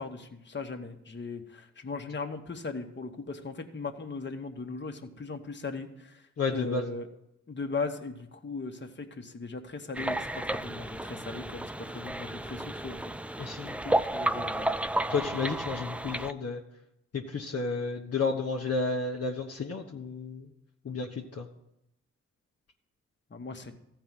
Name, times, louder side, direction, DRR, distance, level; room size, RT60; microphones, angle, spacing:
voice 1, 0.0-6.2 6.5-7.1 7.5-13.1 13.8-14.7 23.3-23.7, left 4 dB, 40° left, 4 dB, 1.4 m, -38 dB
voice 2, 6.4-6.9 13.4-13.8 15.1-16.6 17.1-20.5 20.8-21.5, left 4 dB, 55° left, 0 dB, 1.1 m, -32 dB
sound 1, 9.9-16.3, right 1 dB, 5° right, 0.4 m, -32 dB
14.0 x 4.7 x 7.6 m, 0.83 s
cardioid pair, 50°, 29 cm